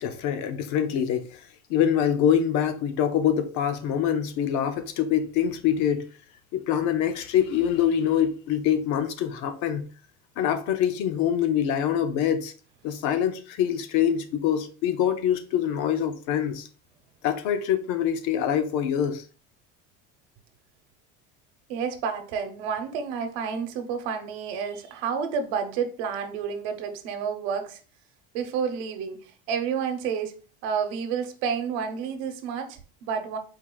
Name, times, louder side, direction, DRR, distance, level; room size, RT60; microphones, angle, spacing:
voice 1, 0.0-1.4 1.7-6.0 6.5-9.9 10.4-12.5 12.8-16.7 17.2-19.2, left 9 dB, 60° left, 0.7 m, -25 dB
voice 2, 21.7-27.8 28.3-30.3 30.6-33.4, right 6 dB, 80° right, 0.9 m, -30 dB
4.6 x 2.5 x 3.8 m
cardioid pair, 140°, 32 cm